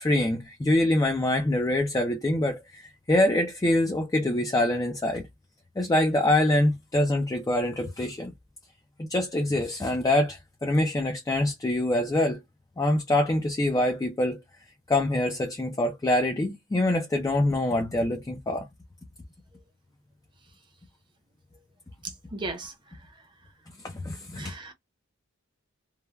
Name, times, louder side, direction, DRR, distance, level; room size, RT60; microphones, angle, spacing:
voice 1, 0.0-2.8 3.1-5.2 5.8-8.3 9.0-12.4 12.8-14.4 14.9-18.7 23.8-24.5, left 1 dB, 15° left, 0.3 m, -25 dB
voice 2, 22.3-22.7 24.4-24.7, right 2 dB, 20° right, 0.7 m, -35 dB
3.1 x 2.1 x 2.2 m
head